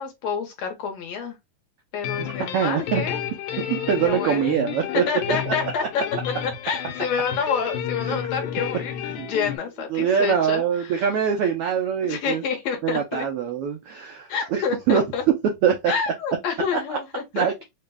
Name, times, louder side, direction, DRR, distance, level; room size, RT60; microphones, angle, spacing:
voice 1, 0.0-1.4 1.9-3.2 4.0-5.8 6.4-11.0 12.0-13.3 14.3-15.2 15.9-17.5, left 6 dB, 75° left, 2.1 m, -28 dB
sound 1, 2.0-9.6, left 9 dB, 90° left, 2.2 m, -31 dB
voice 2, 2.2-3.0 3.6-5.5 8.0-8.2 9.1-9.3 9.9-12.4 12.8-15.0 15.6-15.9 16.9-17.0 17.3-17.6, right 8 dB, 85° right, 1.3 m, -24 dB
4.8 x 2.2 x 3.3 m
omnidirectional pair, 3.4 m